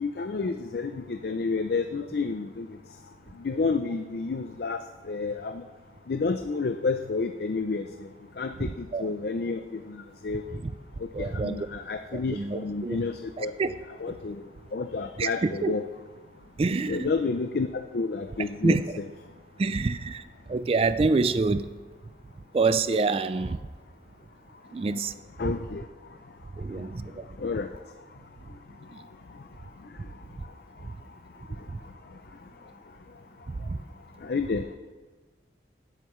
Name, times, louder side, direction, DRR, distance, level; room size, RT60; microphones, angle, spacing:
voice 1, 0.0-2.7 3.4-5.6 6.1-7.9 8.4-10.4 11.0-13.5 14.0-14.4 14.7-15.8 16.9-17.7 17.9-19.1 25.4-25.9 26.7-26.9 27.4-27.7 34.2-34.7, left 4 dB, 60° left, 7 dB, 0.4 m, -30 dB
voice 2, 11.1-11.7 12.1-13.0 13.4-13.7 15.2-15.7 16.6-17.1 18.6-18.8 19.6-20.2 20.5-21.7 22.5-23.6 24.7-25.1 26.6-27.2 28.9-29.0 33.5-33.8, right 3 dB, 30° right, 13 dB, 0.3 m, -26 dB
16.5 x 7.9 x 3.1 m, 1.3 s
head